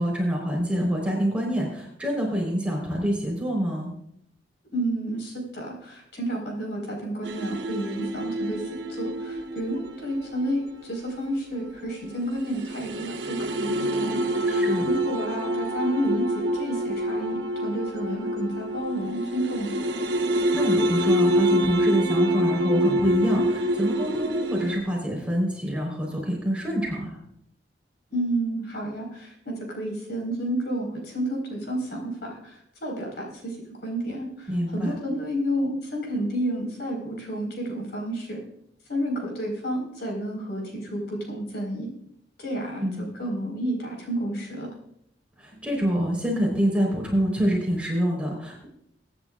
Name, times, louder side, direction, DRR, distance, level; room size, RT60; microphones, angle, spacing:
voice 1, 0.0-3.9 14.5-14.9 20.5-27.2 34.5-34.9 42.8-43.1 45.4-48.7, equal, 5° right, -1 dB, 4.0 m, -26 dB
voice 2, 4.7-8.6 8.9-14.2 14.8-19.8 28.1-33.6 33.8-38.4 38.9-41.9 42.4-44.7, right 1 dB, 65° left, 1 dB, 4.6 m, -30 dB
sound 1, 7.2-24.8, equal, 80° right, 1.1 m, -27 dB
23.0 x 10.0 x 2.5 m, 0.73 s
head